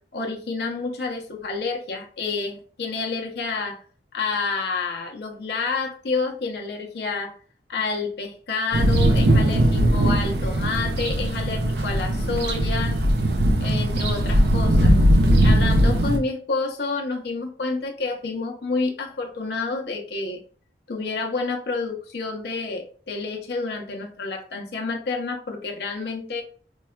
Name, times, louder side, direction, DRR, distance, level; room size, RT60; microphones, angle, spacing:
voice 1, 0.1-3.8 4.1-7.3 7.7-13.0 13.6-15.0 15.4-20.4 20.9-26.4, left 4 dB, 65° left, 1 dB, 0.6 m, -29 dB
sound 1, 8.7-16.2, right 1 dB, 70° right, 0.6 m, -19 dB
4.5 x 2.1 x 2.2 m, 0.43 s
head